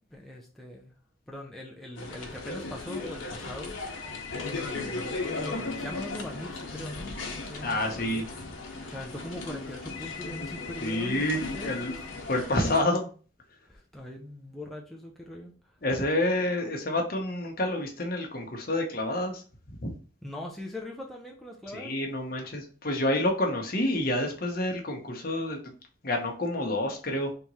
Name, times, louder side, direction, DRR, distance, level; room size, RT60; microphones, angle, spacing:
voice 1, 0.1-0.9 1.3-3.7 4.4-8.2 8.9-12.1 13.7-15.5 20.2-21.9, left 1 dB, ahead, 0.5 m, -41 dB
sound 1, 2.0-12.8, left 3 dB, 85° left, 0.9 m, -37 dB
voice 2, 7.6-8.3 10.8-11.9 12.3-13.1 15.8-19.4 19.8-19.9 21.7-25.7 26.0-27.3, left 1 dB, 45° left, 0.9 m, -28 dB
3.5 x 2.9 x 4.1 m
head